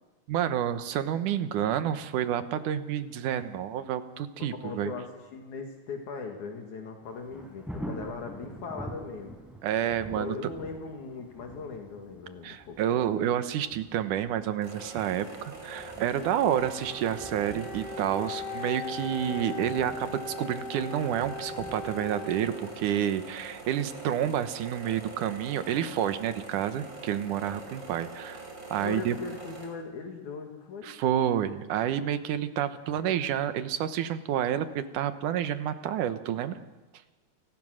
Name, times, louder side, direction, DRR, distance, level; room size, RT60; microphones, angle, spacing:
voice 1, 0.3-4.9 9.6-10.3 12.4-28.4 28.7-29.2 30.8-36.6, right 10 dB, 75° right, 11 dB, 2.6 m, -29 dB
voice 2, 4.6-9.4 10.1-12.8 28.8-31.0, left 4 dB, 70° left, 3 dB, 3.3 m, -39 dB
Thunder, 7.0-25.8 26.3-26.4, equal, ahead, 4.5 m, -47 dB
sound 1, 14.6-29.7, right 2 dB, 35° right, 6.0 m, -44 dB
Wind instrument woodwind instrument, 16.6-22.9, left 3 dB, 15° left, 6.7 m, -39 dB
29.5 x 18.5 x 6.4 m, 1.2 s
omnidirectional pair, 3.7 m